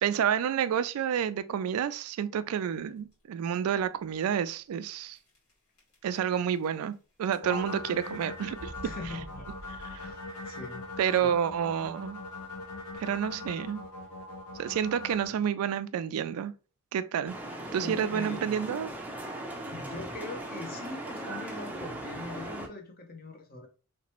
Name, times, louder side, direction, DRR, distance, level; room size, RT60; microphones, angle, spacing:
voice 1, 0.0-5.2 6.0-8.7 9.9-10.1 11.0-12.2 13.0-13.9 14.6-16.5 16.9-17.4 17.7-18.9, right 8 dB, 75° right, 0.3 m, -29 dB
sound 1, 2.7-3.1 3.8-3.9 4.1-4.2 5.1-5.5 5.8-6.9 7.2-7.8 8.5-10.4, right 2 dB, 70° left, 2.0 m, -49 dB
sound 2, 7.4-15.3, left 2 dB, 90° left, 0.7 m, -41 dB
voice 2, 8.8-9.5 10.0-10.9 17.8-18.4 19.7-23.7, left 3 dB, 45° left, 0.8 m, -41 dB
sound 3, 17.3-22.7, right 1 dB, 5° right, 0.5 m, -39 dB
3.3 x 2.9 x 2.9 m
head